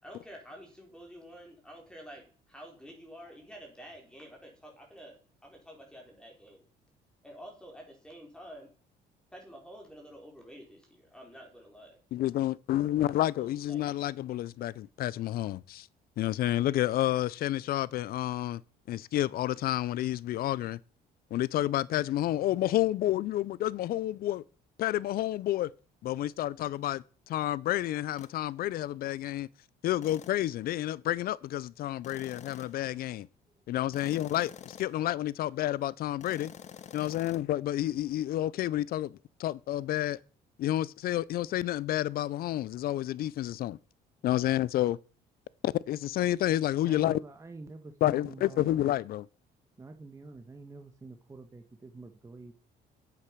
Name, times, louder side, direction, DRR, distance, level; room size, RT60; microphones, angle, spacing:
voice 1, 0.0-6.6 7.2-8.7 9.3-12.0 13.4-13.8, equal, 5° left, 4.5 m, -49 dB
voice 2, 12.1-15.9 16.2-18.6 18.9-20.8 21.3-24.4 24.8-25.7 26.0-29.5 29.8-33.3 33.7-36.5 36.9-39.1 39.4-40.2 40.6-43.8 44.2-45.0 45.6-47.2 48.0-49.3, left 14 dB, 65° left, 0.5 m, -30 dB
sound 1, 28.2-28.4 30.0-30.5 32.0-32.9 33.9-35.1 36.2-37.4, left 8 dB, 45° left, 0.9 m, -48 dB
voice 3, 46.8-48.7 49.8-52.5, right 3 dB, 15° right, 1.2 m, -47 dB
8.6 x 8.3 x 6.2 m
cardioid pair, 110°, 17 cm